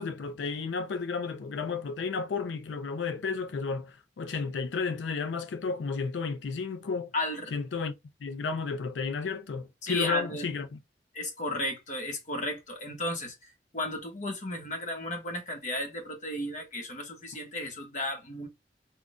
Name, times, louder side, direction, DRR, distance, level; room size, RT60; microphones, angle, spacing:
voice 1, 0.0-7.1 7.5-7.9 8.2-10.8, left 5 dB, 85° left, 0.4 m, -32 dB
voice 2, 7.1-7.5 9.8-10.4 11.1-13.4 13.7-18.5, left 1 dB, 45° left, 1.0 m, -34 dB
3.6 x 2.2 x 2.4 m
head